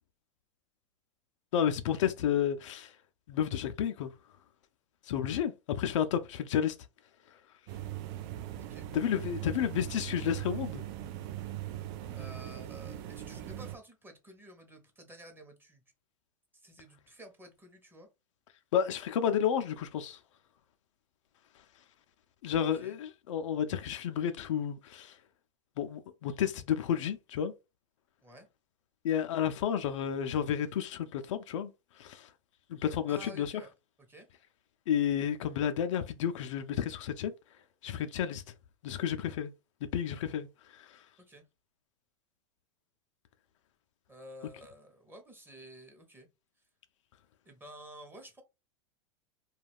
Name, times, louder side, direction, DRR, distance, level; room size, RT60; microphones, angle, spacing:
voice 1, 1.5-2.9 3.3-4.1 5.0-6.8 8.9-10.8 18.7-20.2 22.4-25.2 25.8-27.5 29.0-31.7 32.0-32.3 32.7-33.5 34.9-37.3 37.8-38.4 38.8-39.5 39.9-41.0, left 9 dB, 80° left, 0.4 m, -31 dB
sound 1, 7.7-13.8, right 13 dB, 55° right, 0.4 m, -40 dB
voice 2, 12.1-15.8 16.5-18.1 22.5-23.0 28.2-28.5 33.1-33.7 34.0-34.3 41.2-41.4 44.1-46.3 47.4-48.4, equal, 15° right, 0.8 m, -51 dB
2.3 x 2.2 x 3.4 m
hypercardioid pair, 110°, 16 cm